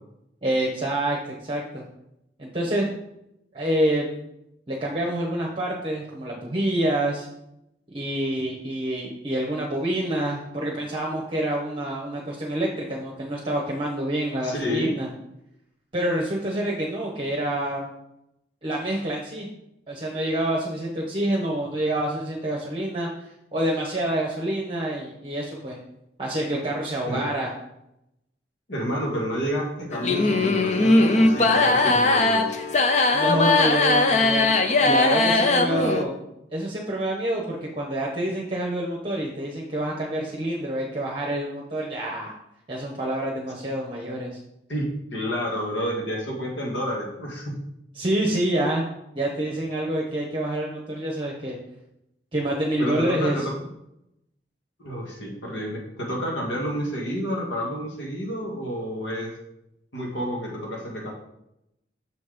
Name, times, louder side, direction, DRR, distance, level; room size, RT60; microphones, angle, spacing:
voice 1, 0.4-1.8 2.4-2.9 3.5-4.1 4.7-7.3 7.9-15.1 15.9-17.9 18.6-19.5 19.9-23.1 23.5-25.8 26.2-27.5 33.1-34.5 34.8-36.2 36.5-42.3 42.7-44.3 47.9-48.9 49.1-51.6 52.3-53.5, right 1 dB, 30° right, -2 dB, 0.9 m, -27 dB
voice 2, 14.4-14.9 27.1-27.3 28.7-32.5 35.7-35.8 44.7-47.6 52.8-53.5 54.8-59.3 59.9-61.1, equal, 85° left, -1 dB, 1.9 m, -29 dB
sound 1, 29.9-36.0, left 2 dB, 40° left, 0.6 m, -20 dB
6.7 x 4.2 x 5.0 m, 0.83 s
head